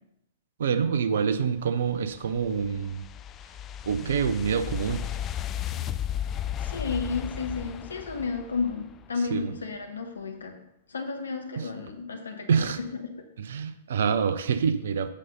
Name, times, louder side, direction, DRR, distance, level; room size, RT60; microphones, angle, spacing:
voice 1, 0.6-3.0 3.9-5.0 9.3-9.5 11.6-11.7 12.5-12.8 13.4-15.1, right 6 dB, 60° right, 11 dB, 0.7 m, -26 dB
sound 1, 1.8-9.1, left 10 dB, 25° left, 0.4 m, -35 dB
voice 2, 6.6-10.6 10.9-12.7 13.0-13.2, left 4 dB, 75° left, 5 dB, 1.3 m, -32 dB
8.3 x 5.6 x 5.5 m, 0.80 s
figure-of-eight pair, 105°, 0 cm